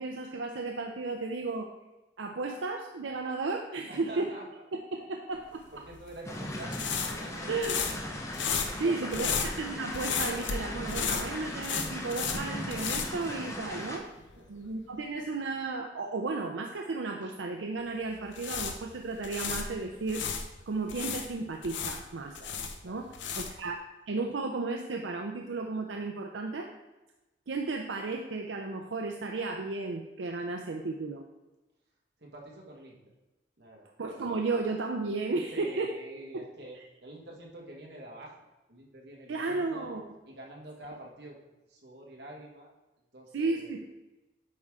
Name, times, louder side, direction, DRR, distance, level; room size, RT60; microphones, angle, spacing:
voice 1, 0.0-1.7 2.2-4.3 4.9-5.6 7.5-7.8 8.8-9.3 9.6-14.1 14.5-20.2 20.7-22.3 22.8-23.1 23.4-26.7 27.5-31.2 34.0-35.9 36.3-36.4 39.3-40.0 43.3-43.9, right 3 dB, 90° right, 2 dB, 0.5 m, -34 dB
voice 2, 3.9-4.6 5.3-8.2 8.8-9.3 14.4-14.7 22.4-23.0 32.2-33.0 33.6-33.9 35.5-38.4 38.7-40.0 40.2-42.7 43.1-43.7, right 1 dB, 65° right, -1 dB, 1.6 m, -47 dB
sound 1, 5.9-13.9 14.2-14.4 18.1-20.5 20.9-23.7, left 6 dB, 90° left, 0.7 m, -34 dB
sound 2, 6.2-14.0, left 1 dB, 15° left, 0.8 m, -38 dB
8.5 x 4.7 x 3.7 m, 1.0 s
head